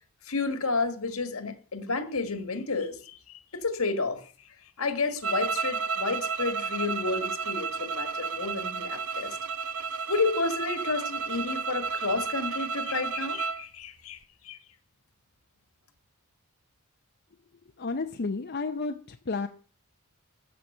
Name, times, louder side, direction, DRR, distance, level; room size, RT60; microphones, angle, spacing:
voice 1, 0.3-4.3 4.8-9.4 10.1-14.2 14.4-14.6, left 3 dB, 75° left, 1.8 m, -31 dB
sound 1, 5.2-13.6, right 5 dB, 75° right, 0.8 m, -32 dB
voice 2, 17.8-19.5, left 3 dB, 50° left, 0.7 m, -31 dB
13.0 x 7.6 x 5.6 m
head